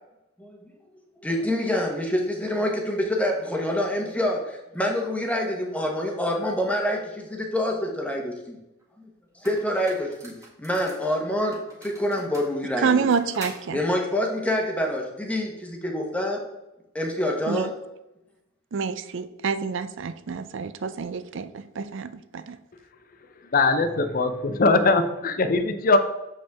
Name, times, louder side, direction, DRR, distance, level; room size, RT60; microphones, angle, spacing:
voice 1, 1.2-8.6 9.4-10.3 10.6-12.9 13.7-16.4 16.9-17.7, left 1 dB, 5° left, 1 dB, 1.0 m, -26 dB
sound 1, 8.8-8.9 9.4-11.1 11.5-13.6, right 1 dB, 15° right, 1.6 m, -43 dB
voice 2, 12.8-13.8 17.5-17.7 18.7-22.6, right 5 dB, 60° right, 13 dB, 0.4 m, -27 dB
voice 3, 23.5-26.0, left 3 dB, 45° left, 9 dB, 0.6 m, -21 dB
7.3 x 5.2 x 3.5 m, 0.90 s
head